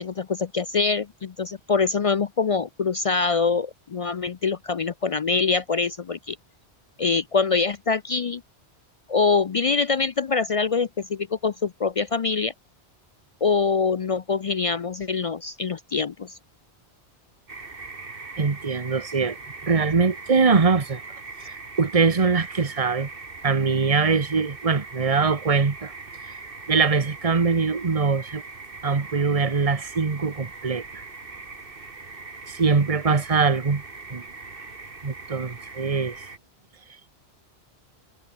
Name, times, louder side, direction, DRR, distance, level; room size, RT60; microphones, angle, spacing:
voice 1, 0.0-6.4 7.0-8.4 9.1-12.5 13.4-16.4, left 4 dB, 50° left, 0.4 m, -24 dB
sound 1, 17.5-36.4, right 3 dB, 55° right, 2.3 m, -41 dB
voice 2, 18.4-19.4 19.6-21.0 21.4-23.1 23.4-25.9 26.3-26.4 26.7-28.4 28.8-31.0 32.5-33.8 34.1-34.2 35.0-36.1, right 4 dB, 35° right, 1.3 m, -22 dB
omnidirectional pair, 1.1 m